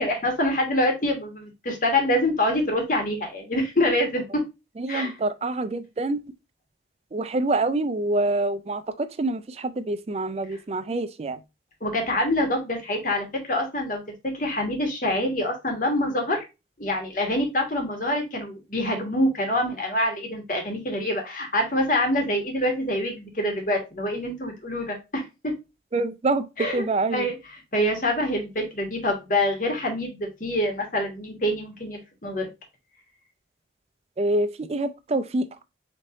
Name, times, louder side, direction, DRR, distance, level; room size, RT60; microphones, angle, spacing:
voice 1, 0.0-4.4 4.9-5.1 11.8-14.0 14.3-16.4 16.8-25.5 26.6-26.8 27.1-27.3 27.7-32.5, left 1 dB, 45° left, 1.3 m, -25 dB
voice 2, 4.8-6.2 7.1-11.4 25.9-27.3 34.2-35.5, right 2 dB, 35° right, 0.4 m, -26 dB
4.3 x 3.2 x 3.7 m
head